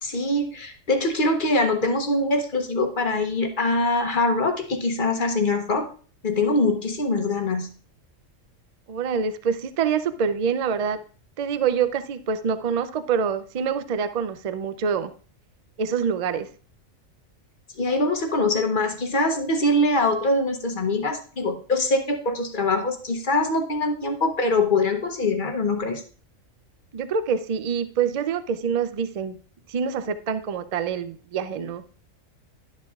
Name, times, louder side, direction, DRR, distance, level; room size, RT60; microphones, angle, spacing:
voice 1, 0.0-5.9 6.2-7.7 17.8-26.0, left 2 dB, 45° left, 5 dB, 0.9 m, -23 dB
voice 2, 8.9-11.0 11.4-15.1 15.8-16.5 26.9-29.3 29.7-31.8, right 6 dB, 80° right, 11 dB, 0.3 m, -26 dB
11.5 x 7.5 x 2.4 m, 0.40 s
omnidirectional pair, 1.4 m